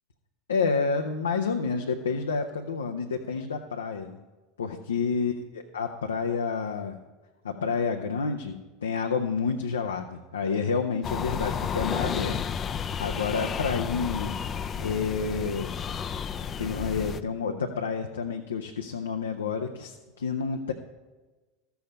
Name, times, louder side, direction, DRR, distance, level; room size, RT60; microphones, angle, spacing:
voice 1, 0.5-4.2 4.6-7.0 7.4-12.4 13.0-14.4 14.8-15.7 16.6-20.7, left 5 dB, 85° left, 4 dB, 0.6 m, -29 dB
sound 1, 11.0-17.2, left 7 dB, 35° left, 0.5 m, -32 dB
13.0 x 7.0 x 5.3 m, 1.2 s
hypercardioid pair, 85°, 0 cm